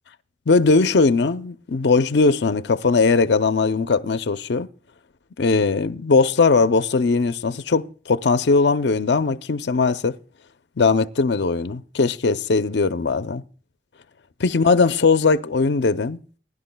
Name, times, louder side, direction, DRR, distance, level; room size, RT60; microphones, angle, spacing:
voice 1, 0.5-4.7 5.4-10.2 10.8-13.4 14.4-16.2, left 4 dB, 70° left, 0.6 m, -19 dB
20.0 x 11.0 x 2.2 m
head